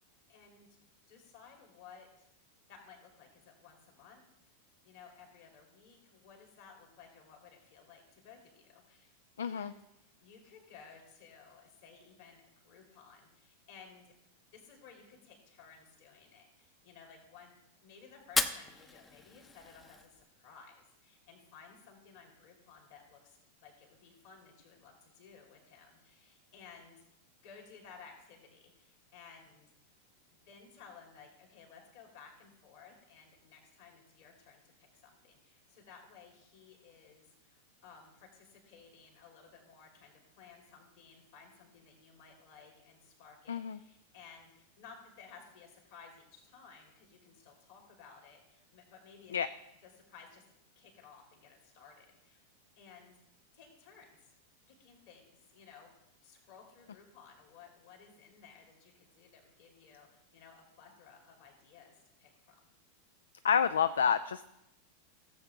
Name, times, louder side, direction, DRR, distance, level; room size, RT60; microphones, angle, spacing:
voice 1, 0.3-0.8 1.1-2.3 2.7-4.2 4.8-9.1 9.4-14.1 14.5-27.0 27.4-29.9 30.3-49.5 49.8-50.4 50.8-52.5 52.8-53.1 53.5-54.2 54.7-56.0 56.2-62.7, left 6 dB, 50° left, 1 dB, 2.9 m, -57 dB
voice 2, 9.4-9.7 43.5-43.8 49.3-49.5 63.4-64.4, left 7 dB, 65° left, 14 dB, 0.3 m, -29 dB
Fire, 18.2-20.2, left 3 dB, 15° left, 0.7 m, -36 dB
16.0 x 7.6 x 3.6 m, 0.87 s
figure-of-eight pair, 90°, 0 cm